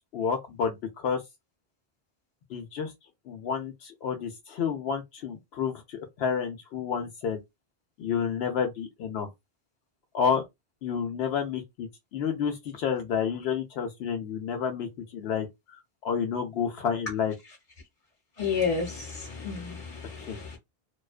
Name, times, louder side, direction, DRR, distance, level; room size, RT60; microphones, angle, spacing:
voice 1, 0.1-1.2 2.5-2.9 3.3-7.4 8.0-9.3 10.1-10.4 10.8-11.9 12.1-14.9 15.1-15.5 16.0-17.3 20.2-20.4, left 7 dB, 80° left, 0.8 m, -30 dB
voice 2, 18.4-20.6, left 5 dB, 40° left, 0.8 m, -31 dB
2.3 x 2.2 x 2.3 m
omnidirectional pair, 1.0 m